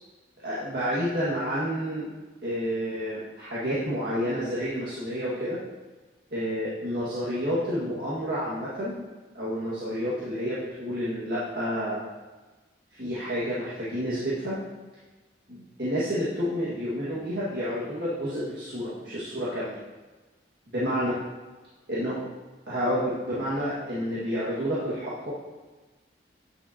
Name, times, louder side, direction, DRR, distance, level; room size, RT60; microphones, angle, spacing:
voice 1, 0.4-2.1 2.4-5.6 6.3-9.0 9.4-12.0 12.9-14.6 15.5-19.8 20.7-21.2 21.9-22.2 22.7-25.3, equal, 60° right, -9 dB, 1.7 m, -29 dB
9.4 x 7.0 x 2.8 m, 1.2 s
head